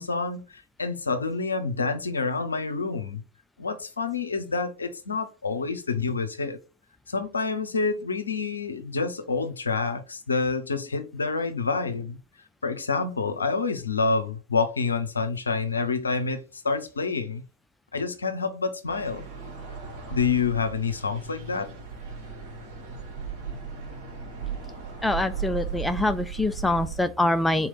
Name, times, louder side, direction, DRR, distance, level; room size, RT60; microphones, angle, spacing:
voice 1, 0.0-3.2 3.6-6.6 7.1-12.2 12.6-17.4 17.9-19.2 20.1-21.7, left 4 dB, 75° left, 0.6 m, -28 dB
sound 1, 18.9-27.0, right 6 dB, 45° right, 2.3 m, -37 dB
voice 2, 25.0-27.7, left 1 dB, 5° left, 0.3 m, -25 dB
3.8 x 3.0 x 3.9 m
figure-of-eight pair, 90°, 0 cm